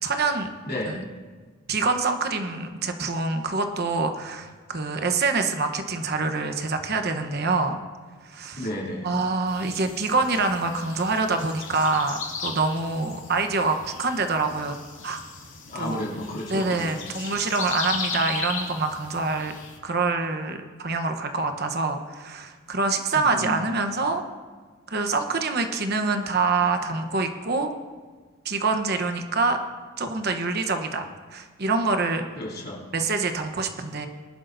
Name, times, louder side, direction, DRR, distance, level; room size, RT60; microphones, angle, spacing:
voice 1, 0.0-0.5 0.9-1.0 1.7-7.8 8.2-8.7 9.0-15.2 15.7-16.0 16.5-19.5 19.8-24.2 24.9-27.7 28.4-29.6 30.0-32.3 32.9-34.1, right 3 dB, 50° right, 6 dB, 1.0 m, -26 dB
voice 2, 0.6-1.0 8.6-9.1 15.7-17.3 23.1-23.6 32.4-32.8, left 1 dB, 50° left, -4 dB, 3.1 m, -32 dB
sound 1, 9.5-19.8, left 5 dB, 80° left, 2.2 m, -37 dB
21.5 x 12.0 x 2.7 m, 1.4 s
head